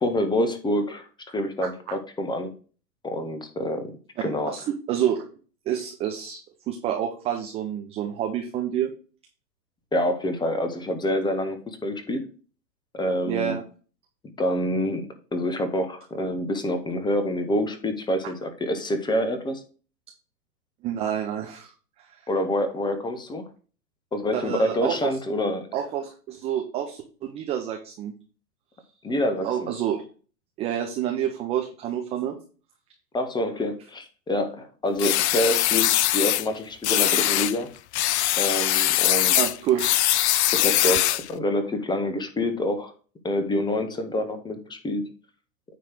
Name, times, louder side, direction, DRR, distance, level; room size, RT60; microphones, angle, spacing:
voice 1, 0.0-2.5 3.0-3.9 4.2-4.5 9.9-12.3 12.9-13.6 14.4-19.6 22.3-23.4 24.1-25.7 29.0-29.7 33.1-37.7 38.4-39.4 40.5-42.9 43.2-45.0, left 1 dB, 10° left, 8 dB, 1.0 m, -27 dB
voice 2, 4.2-5.2 5.7-6.4 6.7-8.9 13.2-13.6 20.8-21.7 22.1-22.2 24.3-25.0 25.7-28.1 29.4-30.0 30.6-32.4 39.3-39.9 40.3-40.5, right 10 dB, 15° right, 3 dB, 0.4 m, -28 dB
sound 1, 35.0-36.5 36.8-37.6 37.9-41.3, left 13 dB, 45° left, 0.4 m, -22 dB
9.3 x 3.2 x 6.1 m, 0.38 s
hypercardioid pair, 120°, 50 cm